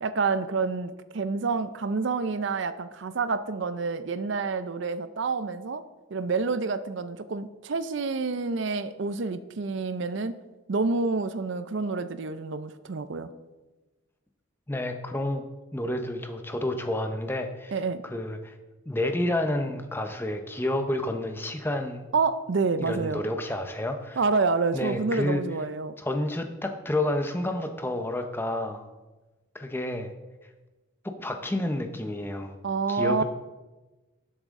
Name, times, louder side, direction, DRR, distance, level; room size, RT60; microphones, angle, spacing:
voice 1, 0.0-5.8 6.1-10.4 10.7-13.3 17.7-18.0 22.1-23.2 24.2-25.9 32.6-33.2, right 4 dB, 60° right, 13 dB, 0.5 m, -28 dB
voice 2, 14.7-15.4 15.7-17.7 18.0-18.6 18.9-22.0 22.8-24.2 24.7-25.4 26.0-28.9 29.5-30.1 31.2-32.5 32.9-33.2, left 1 dB, 10° left, 6 dB, 0.6 m, -30 dB
12.0 x 7.4 x 3.7 m, 1.1 s
head